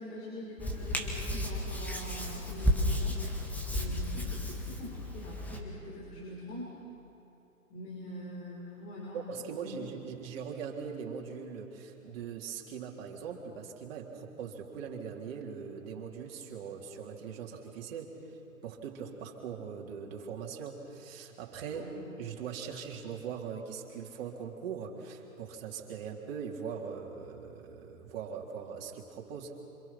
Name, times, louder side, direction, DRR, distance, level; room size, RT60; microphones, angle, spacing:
voice 1, 0.0-3.2 3.7-6.8 7.7-9.8 21.7-21.9, left 1 dB, 50° left, -6 dB, 6.2 m, -44 dB
Hands, 0.6-5.6, left 1 dB, 5° left, 1.8 m, -33 dB
voice 2, 9.1-21.9 22.2-29.6, right 6 dB, 45° right, -1 dB, 3.6 m, -41 dB
28.0 x 26.5 x 6.0 m, 2.9 s
figure-of-eight pair, 125°, 42 cm